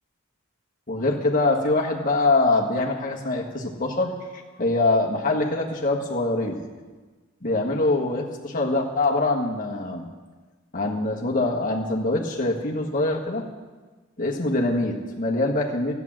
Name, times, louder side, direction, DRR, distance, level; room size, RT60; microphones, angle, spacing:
voice 1, 0.9-4.1 4.6-6.6 7.4-10.0 10.7-13.4 14.2-15.9, left 2 dB, 35° left, -1 dB, 1.6 m, -24 dB
12.5 x 9.3 x 7.4 m, 1.3 s
head